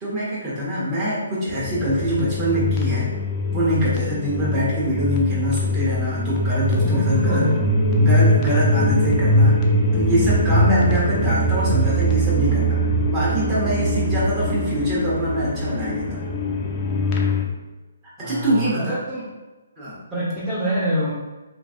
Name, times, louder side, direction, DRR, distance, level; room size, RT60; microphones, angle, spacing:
voice 1, 0.0-3.1 3.5-7.4 8.0-9.6 9.9-16.3 18.2-19.0 19.8-20.0, equal, 25° right, -8 dB, 1.2 m, -24 dB
sound 1, 1.5-17.5, equal, 25° left, 0.4 m, -21 dB
voice 2, 4.2-4.5 6.8-7.7 13.9-14.0 18.2-19.3 20.1-21.1, equal, 10° right, -12 dB, 0.7 m, -26 dB
3.0 x 2.6 x 2.5 m, 1.1 s
figure-of-eight pair, 140°, 0 cm